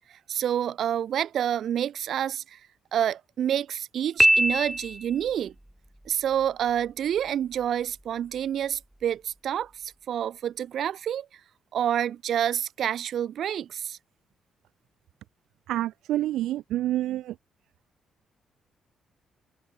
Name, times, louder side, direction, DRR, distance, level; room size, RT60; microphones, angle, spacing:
voice 1, 0.3-2.6 2.9-5.5 6.1-11.3 11.7-14.0, right 10 dB, 65° right, 7.3 m, -28 dB
Piano, 4.2-5.3, equal, 5° right, 3.8 m, -22 dB
voice 2, 15.7-17.3, right 14 dB, 85° right, 6.6 m, -28 dB
cardioid pair, 90°, 0 cm